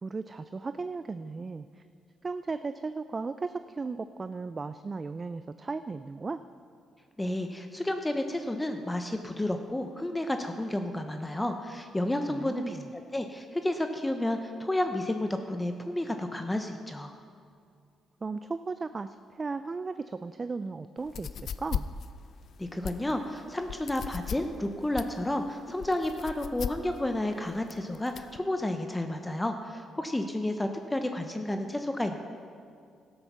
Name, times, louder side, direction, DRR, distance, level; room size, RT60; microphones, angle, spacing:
voice 1, 0.0-1.8 2.2-6.4 12.3-12.9 18.2-21.9, right 4 dB, 30° right, 11 dB, 0.3 m, -36 dB
voice 2, 7.2-17.1 22.6-32.2, left 1 dB, 10° left, 6 dB, 0.7 m, -31 dB
sound 1, 21.0-28.4, left 8 dB, 60° left, 0.4 m, -38 dB
13.5 x 8.0 x 6.0 m, 2.3 s
cardioid pair, 90°, 0 cm